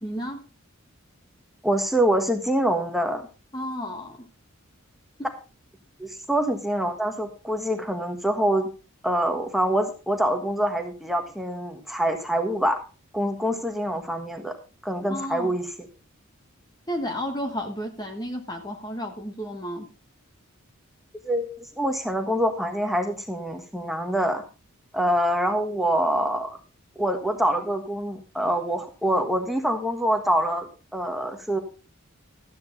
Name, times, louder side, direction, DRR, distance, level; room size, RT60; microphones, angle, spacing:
voice 1, 0.0-0.5 3.5-4.3 5.2-5.3 15.1-15.6 16.9-19.9, equal, 20° left, 3 dB, 1.4 m, -32 dB
voice 2, 1.6-3.2 6.0-8.7 9.0-12.8 13.1-14.6 14.8-15.7 21.2-24.4 24.9-26.6 27.0-31.6, right 1 dB, ahead, 4 dB, 1.5 m, -25 dB
13.0 x 9.2 x 4.0 m, 0.33 s
head